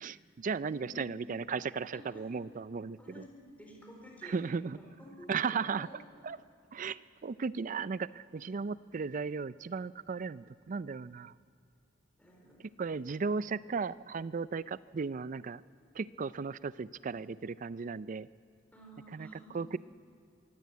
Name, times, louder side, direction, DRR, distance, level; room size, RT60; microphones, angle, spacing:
voice 1, 0.0-3.3 4.2-4.8 5.3-5.9 6.2-6.4 6.7-11.3 12.8-15.6 15.9-18.3 19.1-19.3 19.5-19.8, right 5 dB, 45° right, 17 dB, 0.4 m, -36 dB
voice 2, 0.6-1.1 1.9-2.2 3.0-4.4 4.7-6.0 12.2-12.9 18.7-19.7, equal, 10° left, -1 dB, 4.3 m, -52 dB
22.5 x 16.0 x 8.4 m, 2.5 s
head